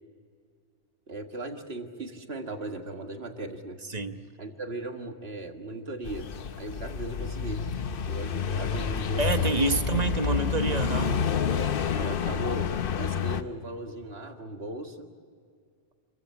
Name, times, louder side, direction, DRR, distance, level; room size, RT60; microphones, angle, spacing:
voice 1, 1.1-3.8 4.4-6.3 6.6-7.6 8.1-9.3 11.5-15.1, right 2 dB, 60° right, 5 dB, 2.0 m, -38 dB
voice 2, 3.8-4.2 9.2-11.2, right 3 dB, 35° right, 7 dB, 1.2 m, -27 dB
sound 1, 6.0-13.4, left 7 dB, 55° left, 0.9 m, -29 dB
28.0 x 15.0 x 10.0 m, 2.1 s
omnidirectional pair, 1.2 m